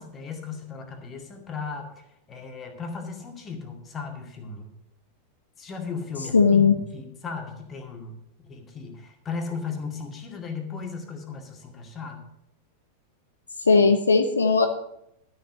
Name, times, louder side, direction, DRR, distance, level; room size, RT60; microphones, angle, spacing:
voice 1, 0.0-4.7 5.6-8.1 8.4-12.2, left 5 dB, 25° left, 4 dB, 2.1 m, -36 dB
voice 2, 6.3-6.7 13.6-14.7, left 4 dB, 75° left, 7 dB, 0.8 m, -18 dB
12.0 x 6.5 x 6.6 m, 0.79 s
figure-of-eight pair, 90°, 0 cm